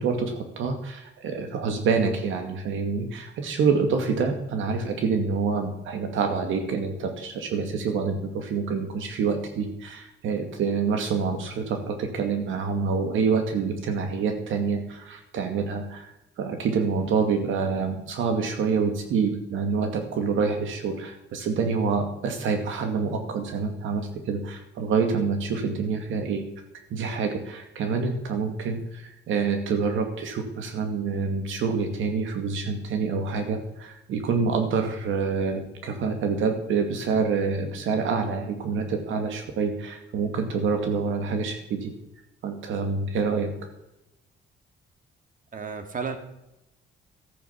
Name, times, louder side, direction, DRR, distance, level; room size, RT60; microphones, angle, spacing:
voice 1, 0.0-26.4 26.9-41.9 42.4-43.5, right 5 dB, 80° right, 5 dB, 2.4 m, -27 dB
voice 2, 45.5-46.2, right 5 dB, 40° right, 7 dB, 2.2 m, -32 dB
13.5 x 9.3 x 5.9 m, 0.90 s
cardioid pair, 90°, 20 cm